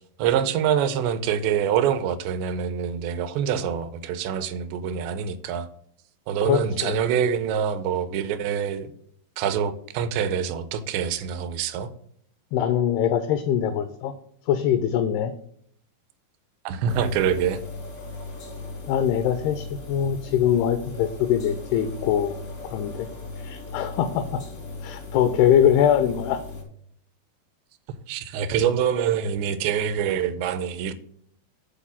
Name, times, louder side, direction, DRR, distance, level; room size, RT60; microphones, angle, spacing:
voice 1, 0.2-5.7 6.3-8.9 9.4-11.9 16.7-17.6 28.1-30.9, right 8 dB, 80° right, 2.8 m, -25 dB
voice 2, 6.5-7.0 12.5-14.1 14.5-15.3 18.9-22.4 22.6-23.1 23.4-24.4 24.8-26.4, left 9 dB, 85° left, 2.2 m, -22 dB
sound 1, 16.9-26.6, left 3 dB, 70° left, 0.7 m, -37 dB
9.3 x 4.1 x 7.2 m
omnidirectional pair, 5.2 m